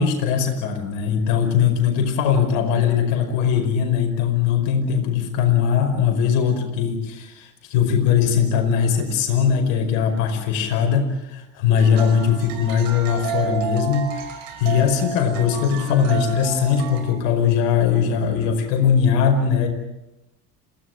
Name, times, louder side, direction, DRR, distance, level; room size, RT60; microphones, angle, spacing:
voice 1, 0.0-14.3 14.6-19.7, left 7 dB, 70° left, 5 dB, 5.3 m, -20 dB
sound 1, 11.8-17.0, right 7 dB, 70° right, 5.2 m, -31 dB
28.0 x 18.0 x 9.3 m, 0.97 s
hypercardioid pair, 60°, 49 cm